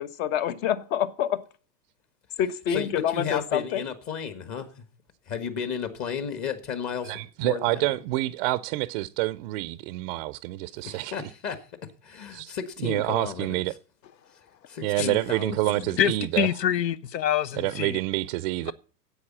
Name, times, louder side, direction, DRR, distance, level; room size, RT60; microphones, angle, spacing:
voice 1, 0.0-1.4 2.4-3.8, left 9 dB, 55° left, 1.2 m, -27 dB
voice 2, 2.7-4.6 5.3-7.1 7.4-7.6 11.1-11.5 12.1-13.6 15.0-16.0, left 7 dB, 35° left, 1.5 m, -33 dB
voice 3, 7.0-11.3 12.3-12.5 12.8-13.7 14.8-16.5 17.6-18.7, right 18 dB, 40° right, 0.4 m, -28 dB
voice 4, 16.0-18.0, left 10 dB, 85° left, 0.9 m, -25 dB
9.8 x 8.2 x 7.3 m
hypercardioid pair, 120°, 49 cm